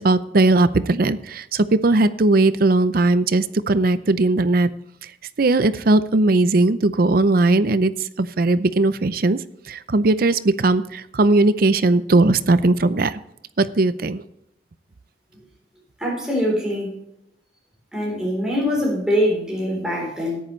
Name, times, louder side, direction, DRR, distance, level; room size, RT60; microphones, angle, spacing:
voice 1, 0.0-4.7 5.4-9.4 9.7-13.2 13.6-14.2, right 2 dB, 55° right, 14 dB, 0.6 m, -18 dB
voice 2, 16.0-16.9 17.9-20.4, equal, 5° right, -4 dB, 3.8 m, -23 dB
14.0 x 10.0 x 3.2 m, 0.79 s
head